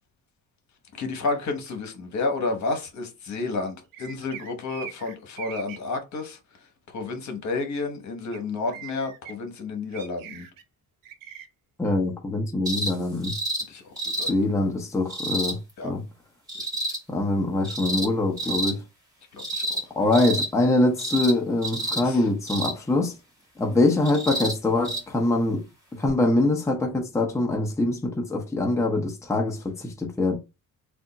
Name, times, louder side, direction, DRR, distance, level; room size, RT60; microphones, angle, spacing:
voice 1, 0.9-6.4 6.9-10.5 13.7-14.3 15.8-15.9 19.3-19.8 21.9-22.2, left 3 dB, 60° left, 1.1 m, -31 dB
sound 1, 3.9-5.8 8.3-8.4 8.7-9.3 9.9-10.6 11.0-11.5, right 9 dB, 85° right, 0.8 m, -41 dB
voice 2, 11.8-13.3 14.3-15.6 15.8-16.0 17.1-18.8 20.0-23.1 23.6-25.6 25.9-30.4, left 2 dB, 10° left, 0.7 m, -24 dB
sound 2, 12.6-12.9 13.2-13.6 14.0-14.3 15.1-15.5 16.5-17.0 17.6-18.1 18.4-18.7 19.4-19.8 20.1-20.5 21.0-21.3 21.6-22.0 22.5-22.8 24.0-24.5 24.8-25.0 26.1-26.2, right 1 dB, 10° right, 1.9 m, -29 dB
3.4 x 2.4 x 3.9 m
cardioid pair, 130°, 33 cm